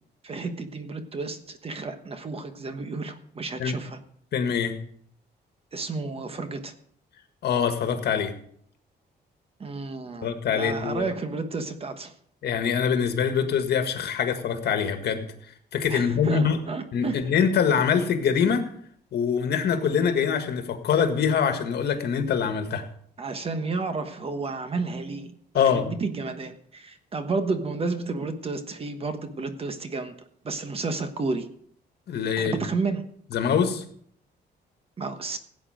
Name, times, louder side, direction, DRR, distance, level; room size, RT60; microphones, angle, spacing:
voice 1, 0.2-4.0 5.7-6.7 9.6-12.1 15.9-17.3 23.2-30.1 30.4-31.5 32.4-33.0 35.0-35.4, right 3 dB, 35° right, 9 dB, 1.2 m, -31 dB
voice 2, 4.3-4.7 7.4-8.3 10.2-11.1 12.4-15.3 15.7-16.6 16.9-18.6 19.1-22.9 25.5-25.9 32.1-32.5 33.3-33.8, left 7 dB, 70° left, 6 dB, 1.8 m, -24 dB
16.5 x 8.6 x 5.0 m, 0.63 s
cardioid pair, 140°, 18 cm